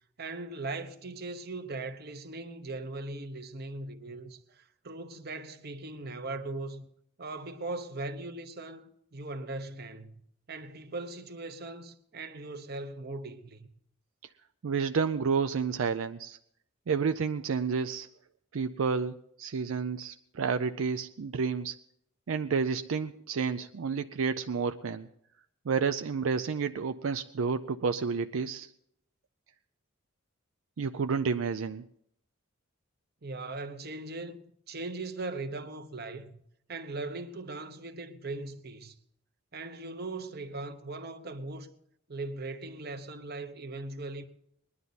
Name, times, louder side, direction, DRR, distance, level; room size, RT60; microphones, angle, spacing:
voice 1, 0.2-6.9 7.2-10.2 10.5-13.7 33.2-36.4 36.7-39.0 39.5-41.7 42.1-44.2, right 2 dB, 50° right, 1.0 m, -39 dB
voice 2, 14.6-16.4 16.9-18.1 18.5-21.8 22.3-25.1 25.7-28.7 30.8-31.8, right 5 dB, 80° right, 0.5 m, -30 dB
20.5 x 11.0 x 4.1 m
head